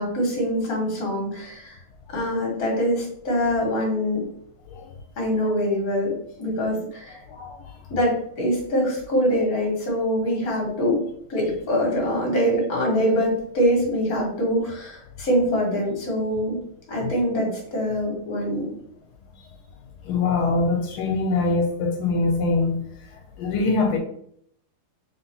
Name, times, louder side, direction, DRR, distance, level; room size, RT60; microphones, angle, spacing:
voice 1, 0.0-1.8 2.1-4.2 5.2-6.1 6.4-7.2 7.9-11.0 11.3-16.6 16.9-18.7, equal, 45° left, 1.7 m, -24 dB
voice 2, 7.3-7.7 17.0-17.1 19.4-19.5 20.0-22.8 23.4-24.0, left 3 dB, 85° left, 1.4 m, -23 dB
3.9 x 3.5 x 2.8 m
omnidirectional pair, 2.3 m